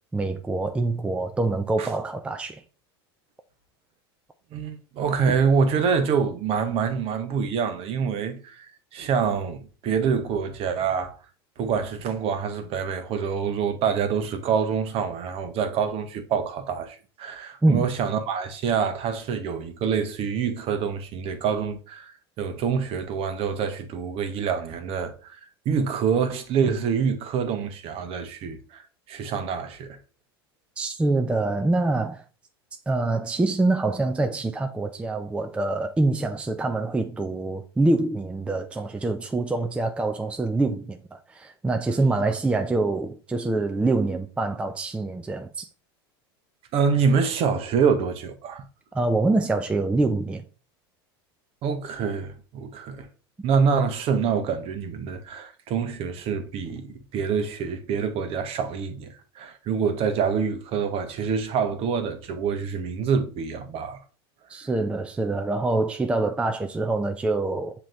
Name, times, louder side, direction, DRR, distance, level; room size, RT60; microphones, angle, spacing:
voice 1, 0.1-2.6 17.6-17.9 30.8-32.2 32.9-45.7 48.9-50.4 64.5-67.7, right 2 dB, 10° right, 0.4 m, -25 dB
voice 2, 4.5-11.2 11.6-25.4 25.6-28.8 29.1-30.0 46.7-48.6 51.6-53.1 53.4-64.0 64.6-64.7, right 6 dB, 45° right, 0.9 m, -26 dB
7.5 x 2.9 x 2.5 m
hypercardioid pair, 90°, 13 cm